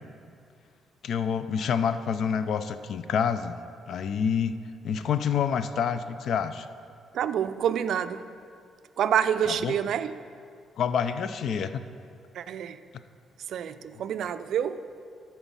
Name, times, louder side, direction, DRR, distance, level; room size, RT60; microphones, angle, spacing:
voice 1, 1.0-3.6 3.9-4.6 4.8-6.7 9.5-9.7 10.8-11.8, left 7 dB, 65° left, 12 dB, 0.4 m, -27 dB
voice 2, 7.1-8.3 9.0-10.2 12.3-12.8 13.5-14.9, right 9 dB, 70° right, 12 dB, 0.3 m, -27 dB
13.0 x 4.4 x 5.4 m, 2.3 s
cardioid pair, 90°, 0 cm